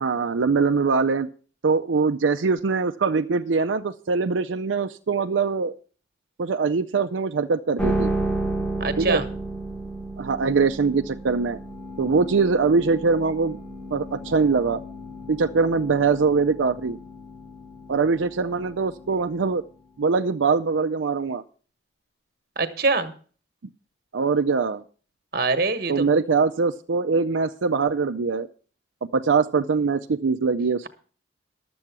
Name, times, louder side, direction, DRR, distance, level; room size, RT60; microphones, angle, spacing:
voice 1, 0.0-1.3 1.6-5.8 6.4-8.1 9.0-9.2 10.2-11.6 12.0-13.6 13.9-14.8 15.3-17.0 17.9-19.6 20.0-21.4 24.1-24.8 25.9-28.5 29.1-30.9, right 4 dB, 85° right, 7 dB, 0.5 m, -22 dB
sound 1, 7.8-20.1, right 1 dB, 10° left, 1.1 m, -33 dB
voice 2, 8.8-9.2 22.6-23.1 25.3-26.1, right 3 dB, 50° right, 11 dB, 1.3 m, -24 dB
12.0 x 7.7 x 6.0 m, 0.41 s
head